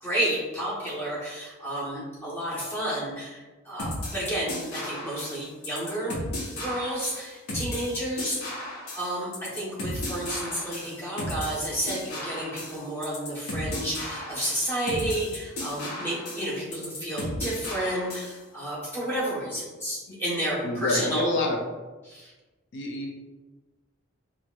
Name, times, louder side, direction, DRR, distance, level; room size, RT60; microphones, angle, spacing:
voice 1, 0.0-6.2 6.5-8.6 8.9-21.4 22.0-22.3, right 1 dB, 10° left, -7 dB, 0.8 m, -31 dB
sound 1, 3.8-18.4, left 1 dB, 80° left, 0.8 m, -35 dB
voice 2, 20.6-21.6 22.7-23.1, left 2 dB, 50° left, 2 dB, 0.4 m, -27 dB
4.2 x 2.2 x 2.2 m, 1.2 s
head